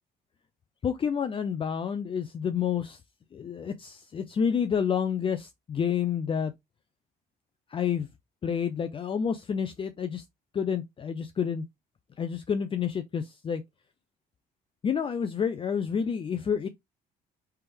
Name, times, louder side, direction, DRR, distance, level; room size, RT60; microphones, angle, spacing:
voice 1, 0.8-3.0 3.3-6.5 7.7-8.1 8.4-10.2 10.5-11.7 12.2-13.6 14.8-16.7, left 7 dB, 30° left, 0.5 m, -29 dB
4.4 x 3.4 x 3.4 m
cardioid pair, 110°, 17 cm